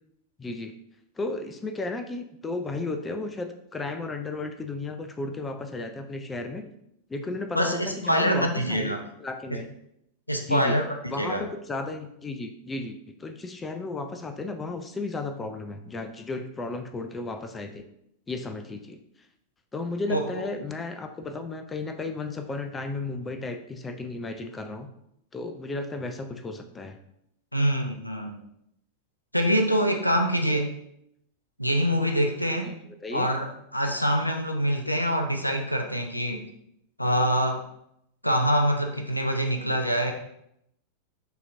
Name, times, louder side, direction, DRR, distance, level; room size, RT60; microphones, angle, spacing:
voice 1, 0.4-0.7 1.2-6.7 7.1-9.7 10.4-10.8 11.1-17.8 18.3-19.0 19.7-24.9 25.3-27.0 32.6-32.7 33.0-33.3, left 3 dB, 15° left, 7 dB, 0.4 m, -34 dB
voice 2, 7.5-9.0 9.5-9.6 10.3-10.8 11.2-11.4 20.1-20.3 20.6-20.7 27.5-28.4 29.3-30.7 31.6-32.7 33.1-36.4 37.0-37.7 38.2-40.1, equal, 90° left, 4 dB, 0.5 m, -25 dB
6.7 x 2.9 x 2.5 m, 0.76 s
figure-of-eight pair, 90°, 0 cm